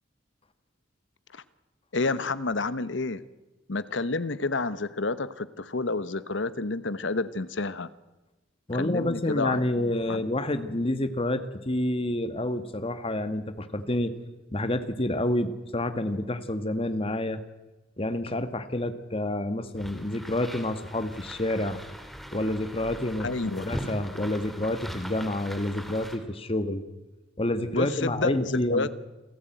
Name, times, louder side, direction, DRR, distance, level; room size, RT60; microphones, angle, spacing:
voice 1, 1.9-3.2 3.7-7.9 8.7-10.2 23.2-23.7 27.7-28.9, left 3 dB, 70° left, 15 dB, 1.1 m, -29 dB
voice 2, 8.7-14.1 14.5-17.4 18.0-21.8 22.3-26.8 27.4-28.9, left 1 dB, 30° left, 11 dB, 1.5 m, -28 dB
sound 1, 19.8-26.2, equal, ahead, 2.7 m, -40 dB
27.5 x 15.5 x 9.1 m, 1.1 s
head